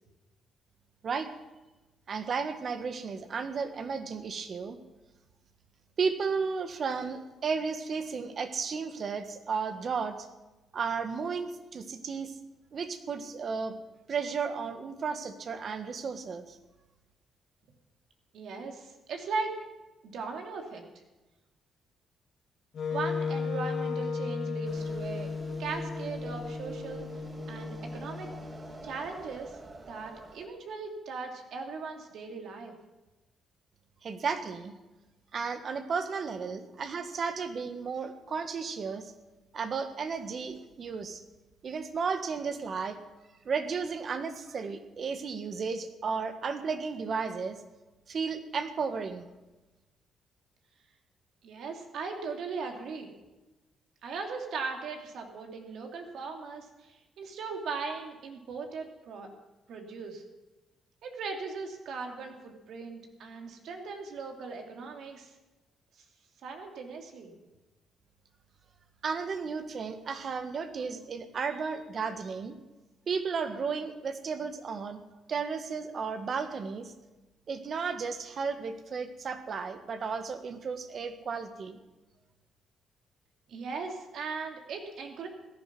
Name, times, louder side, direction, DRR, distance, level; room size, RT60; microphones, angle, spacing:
voice 1, 2.1-4.8 6.0-10.3 10.7-12.3 12.7-13.8 14.1-16.6 34.0-34.7 35.3-39.1 39.5-41.2 41.6-43.0 43.4-47.6 48.1-49.3 69.0-72.5 73.1-75.0 75.3-76.9 77.5-81.8, right 5 dB, 50° right, 9 dB, 1.6 m, -33 dB
voice 2, 18.3-19.6 20.0-20.8 22.9-25.3 25.6-27.1 27.5-28.3 28.8-29.5 29.9-32.7 51.4-53.1 54.0-59.3 59.7-60.2 61.0-65.3 66.4-67.3 83.5-85.3, right 4 dB, 75° right, 3 dB, 2.6 m, -38 dB
Wind instrument woodwind instrument, 22.7-28.8, left 5 dB, 60° left, 2.5 m, -35 dB
sound 1, 24.7-30.4, right 3 dB, 35° right, 2.0 m, -47 dB
16.5 x 11.5 x 6.1 m, 1.1 s
cardioid pair, 80°, 0 cm